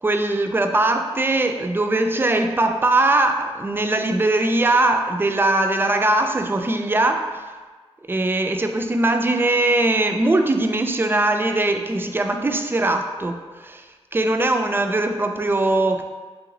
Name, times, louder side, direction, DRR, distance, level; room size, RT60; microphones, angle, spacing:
voice 1, 0.0-7.4 8.1-13.8 14.1-16.0, right 2 dB, 20° right, 5 dB, 0.3 m, -21 dB
3.7 x 2.9 x 3.8 m, 1.4 s
wide cardioid pair, 90°, 11 cm